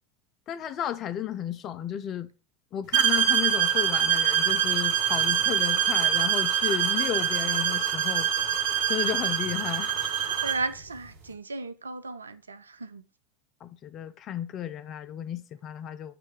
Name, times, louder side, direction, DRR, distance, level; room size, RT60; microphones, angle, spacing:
voice 1, 0.5-2.3 2.7-8.6 8.9-10.0 13.6-16.1, left 10 dB, 35° left, 0.4 m, -33 dB
sound 1, 2.9-10.7, right 9 dB, 55° right, 1.3 m, -25 dB
voice 2, 10.4-13.0, right 3 dB, 80° right, 0.3 m, -35 dB
6.7 x 3.2 x 4.7 m
figure-of-eight pair, 80°, 0 cm